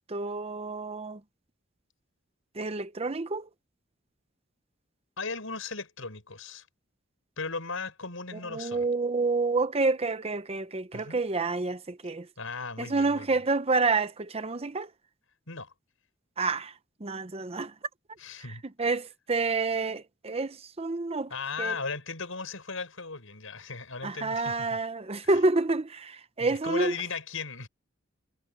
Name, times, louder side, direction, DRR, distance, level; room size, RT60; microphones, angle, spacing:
voice 1, 0.1-1.2 2.6-3.5 8.3-12.3 12.8-14.9 16.4-16.7 17.0-17.7 18.8-21.3 21.6-21.8 24.0-26.9, right 3 dB, 30° right, 0.8 m, -28 dB
voice 2, 5.2-6.7 7.4-8.9 10.9-11.2 12.4-13.4 15.5-15.7 18.2-18.6 21.3-24.8 25.2-25.4 26.4-27.7, left 4 dB, 80° left, 5.6 m, -37 dB
head